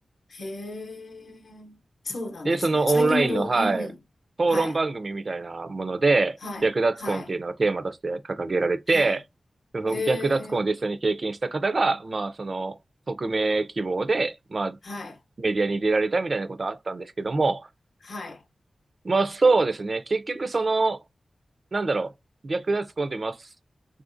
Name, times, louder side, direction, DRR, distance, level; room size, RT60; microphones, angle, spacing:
voice 1, 0.3-1.8 2.0-3.9 4.5-4.8 6.4-6.7 7.0-7.2 8.9-9.1 9.9-10.7 14.8-15.2 18.0-18.4, left 2 dB, 75° left, 0.7 m, -33 dB
voice 2, 2.4-3.9 4.4-9.2 9.7-12.8 13.1-14.8 15.4-17.7 19.0-21.0 21.7-22.1 22.4-23.5, right 3 dB, 45° right, 0.4 m, -25 dB
3.5 x 2.4 x 2.5 m
wide cardioid pair, 95°, 0 cm